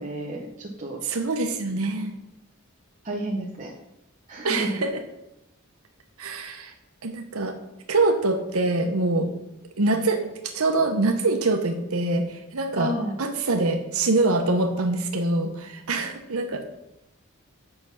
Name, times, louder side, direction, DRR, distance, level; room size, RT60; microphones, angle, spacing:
voice 1, 0.0-1.0 3.0-3.7 4.3-4.8 12.8-13.2, right 1 dB, 35° right, -2 dB, 0.9 m, -31 dB
voice 2, 1.0-2.1 4.4-4.9 6.2-6.7 7.0-7.5 7.9-9.3 9.8-12.9 13.2-16.6, right 2 dB, 85° right, 5 dB, 1.0 m, -24 dB
7.8 x 5.9 x 5.7 m, 0.87 s
head